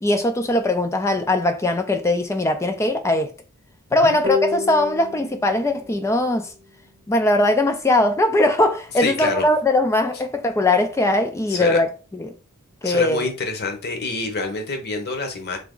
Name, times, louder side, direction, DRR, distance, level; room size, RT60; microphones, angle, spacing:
voice 1, 0.0-3.3 3.9-6.5 7.1-12.3 12.8-13.2, left 1 dB, 15° left, 0.3 m, -20 dB
sound 1, 4.2-7.5, left 5 dB, 40° right, 0.9 m, -30 dB
voice 2, 9.0-9.5 11.5-11.8 12.8-15.6, left 3 dB, 50° left, 0.9 m, -27 dB
3.4 x 2.9 x 3.7 m
head